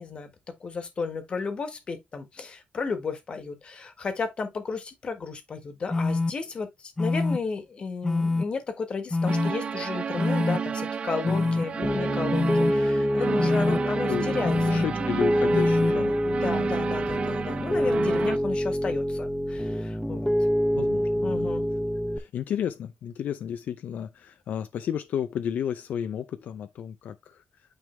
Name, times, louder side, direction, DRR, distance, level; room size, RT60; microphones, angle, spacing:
voice 1, 0.0-14.8 16.3-20.3 21.2-21.7, left 4 dB, 40° left, 1.6 m, -33 dB
sound 1, 5.9-6.3 7.0-7.4 8.0-8.4 9.1-9.5 10.2-10.6 11.2-11.6 12.3-12.7 13.4-13.8 14.4-14.9 15.5-15.9, left 3 dB, 15° left, 0.6 m, -25 dB
sound 2, 9.3-18.4, right 6 dB, 40° right, 0.4 m, -32 dB
voice 2, 11.3-11.6 13.7-13.8 14.1-16.7 17.7-18.0 20.7-21.5 22.1-27.4, left 9 dB, 75° left, 0.6 m, -33 dB
Piano, 11.8-22.2, equal, ahead, 0.9 m, -26 dB
9.2 x 3.5 x 3.3 m
wide cardioid pair, 155°, 3 cm